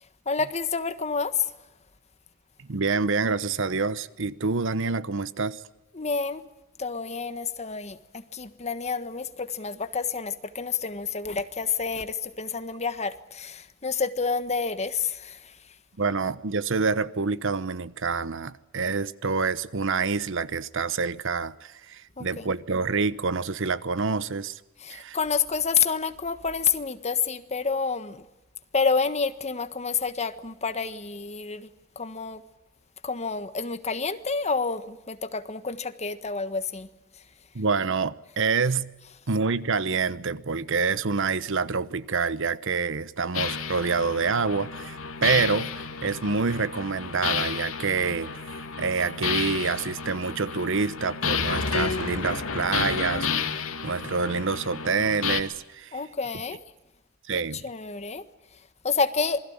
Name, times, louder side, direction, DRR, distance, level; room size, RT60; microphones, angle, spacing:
voice 1, 0.3-1.5 5.9-6.4 6.8-15.6 22.2-22.5 24.8-28.2 28.7-31.7 31.9-32.4 33.0-36.9 55.9-56.6 57.6-58.2 58.8-59.4, left 5 dB, 30° left, 1.5 m, -29 dB
voice 2, 2.6-5.6 16.0-24.6 24.9-25.2 37.5-38.9 39.3-56.0 57.3-57.6, right 4 dB, 65° right, 1.0 m, -27 dB
sound 1, 43.3-55.4, left 6 dB, 85° left, 2.3 m, -31 dB
27.5 x 21.0 x 8.9 m
head